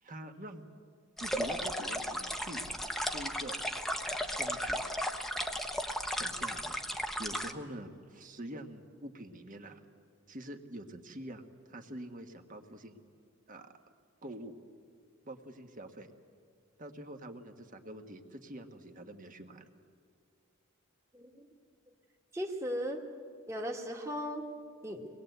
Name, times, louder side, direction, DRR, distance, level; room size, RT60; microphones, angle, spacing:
voice 1, 0.0-0.6 1.2-3.6 4.4-4.8 6.1-6.8 7.2-9.8 10.3-11.4 11.7-13.0 13.5-13.7 14.2-14.5 15.2-16.1 16.8-19.7, right 1 dB, 40° right, 5 dB, 1.5 m, -45 dB
sound 1, 1.2-7.5, equal, ahead, 0.9 m, -35 dB
voice 2, 21.1-21.5 22.3-23.0 23.5-24.4 24.8-25.1, equal, 15° right, 0 dB, 1.7 m, -37 dB
24.5 x 20.0 x 8.0 m, 2.2 s
head